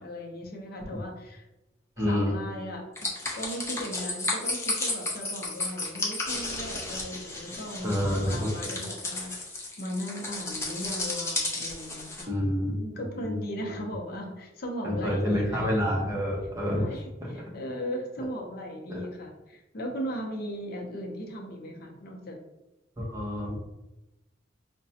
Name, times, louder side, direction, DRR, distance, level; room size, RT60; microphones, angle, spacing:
voice 1, 0.0-1.4 2.0-2.8 3.3-9.3 9.8-16.1 16.7-22.4, equal, 60° left, 1 dB, 0.6 m, -37 dB
voice 2, 2.0-2.3 7.8-8.7 12.3-12.8 13.2-13.4 13.7-13.8 14.8-16.9 18.9-19.0 23.0-23.6, equal, 20° right, -3 dB, 0.8 m, -28 dB
sound 1, 3.0-12.2, left 2 dB, 15° left, 0.6 m, -33 dB
4.8 x 2.2 x 2.7 m, 0.99 s
head